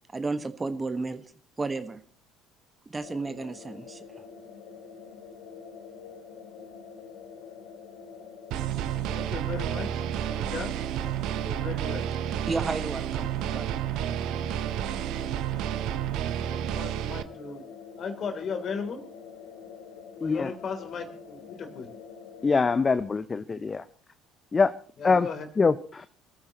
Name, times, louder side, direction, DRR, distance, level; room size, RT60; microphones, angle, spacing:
voice 1, 0.1-1.2 1.6-2.0 2.9-4.0 12.5-13.7, right 3 dB, 25° right, 11 dB, 1.3 m, -32 dB
sound 1, 3.0-23.0, left 6 dB, 65° left, 3.3 m, -46 dB
sound 2, 8.5-17.2, right 11 dB, 60° right, 0.8 m, -30 dB
voice 2, 9.1-10.8 11.4-12.1 13.4-13.7 16.4-17.6 18.0-19.0 20.2-21.9 25.0-25.5, left 5 dB, 45° left, 6 dB, 3.1 m, -37 dB
voice 3, 20.2-20.5 22.4-23.8 24.5-24.7 25.0-25.3 25.6-26.1, left 4 dB, 30° left, 13 dB, 0.6 m, -24 dB
25.5 x 14.5 x 3.0 m, 0.40 s
figure-of-eight pair, 55°, 0 cm